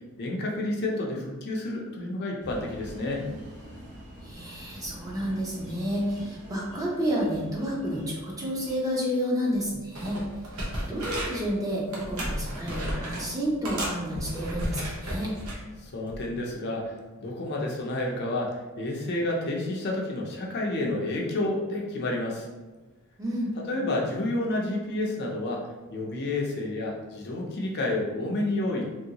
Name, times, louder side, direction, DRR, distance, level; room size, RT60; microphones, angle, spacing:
voice 1, 0.2-3.3 15.8-22.5 23.6-28.8, left 2 dB, 50° left, -1 dB, 0.5 m, -30 dB
sound 1, 2.4-8.8, equal, 55° right, 1.2 m, -45 dB
voice 2, 4.2-10.2 10.6-15.3 23.2-23.5, equal, 15° right, -4 dB, 0.6 m, -30 dB
sound 2, 9.5-9.7 9.9-11.5 11.9-13.3 13.6-15.6 16.1-16.3, right 1 dB, 70° right, 0.9 m, -33 dB
3.0 x 2.7 x 2.8 m, 1.2 s
head